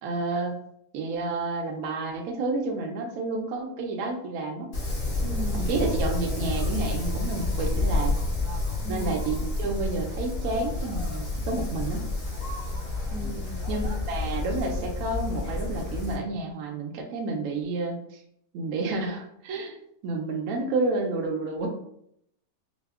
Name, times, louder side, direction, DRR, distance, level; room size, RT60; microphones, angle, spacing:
voice 1, 0.0-0.5 0.9-4.7 5.5-8.2 8.9-12.0 13.7-18.0 18.5-19.7 20.0-21.7, right 3 dB, 70° right, 2 dB, 0.9 m, -30 dB
Wind, 4.7-16.1, left 2 dB, 60° left, 1.6 m, -29 dB
voice 2, 5.2-5.7 8.8-9.1 13.1-13.7, right 2 dB, 85° right, 1 dB, 1.4 m, -37 dB
5.0 x 2.0 x 2.3 m, 0.74 s
omnidirectional pair, 1.8 m